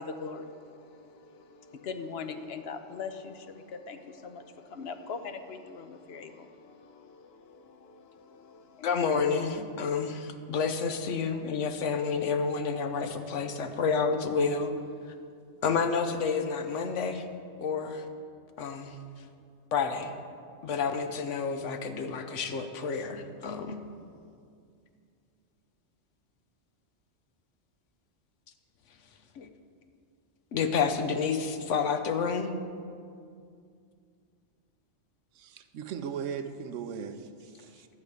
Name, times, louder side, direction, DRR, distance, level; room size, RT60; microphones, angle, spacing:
voice 1, 0.0-8.9, left 5 dB, 60° left, 8 dB, 0.9 m, -42 dB
voice 2, 8.8-14.7 15.1-15.2 15.6-17.3 17.6-18.1 18.6-19.0 19.7-20.1 20.6-23.9 29.4-29.5 30.5-32.5, left 5 dB, 80° left, 7 dB, 1.1 m, -29 dB
voice 3, 35.3-37.9, right 7 dB, 90° right, 9 dB, 1.0 m, -38 dB
11.5 x 5.0 x 8.1 m, 2.3 s
omnidirectional pair, 1.2 m